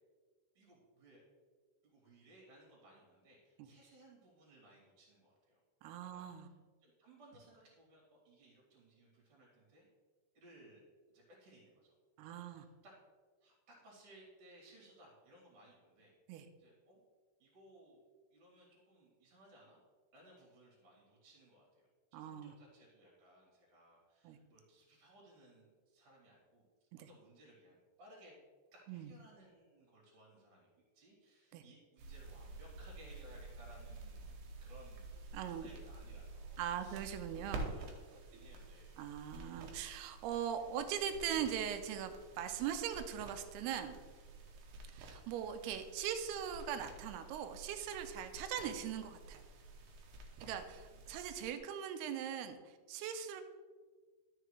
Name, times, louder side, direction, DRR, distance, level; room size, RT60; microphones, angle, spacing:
voice 1, 0.6-1.2 1.8-5.6 6.1-6.5 6.8-9.9 10.3-10.8 11.1-12.9 13.4-16.1 16.6-17.0 17.4-18.0 18.3-19.8 20.1-26.7 26.9-28.4 28.7-30.7 30.9-35.1 35.4-37.1 37.4-39.2 50.3-51.1, right 1 dB, 40° right, -3 dB, 3.6 m, -62 dB
voice 2, 5.8-6.5 12.2-12.7 16.3-16.5 22.1-22.5 24.2-24.4 27.0-27.1 28.9-29.1 31.5-31.6 35.3-35.7 36.6-37.7 39.0-44.0 44.9-49.4 50.4-53.4, right 9 dB, 90° right, 8 dB, 2.7 m, -41 dB
sound 1, 32.0-51.6, right 2 dB, 70° right, 2.6 m, -50 dB
12.5 x 6.8 x 3.2 m, 1.5 s
omnidirectional pair, 4.5 m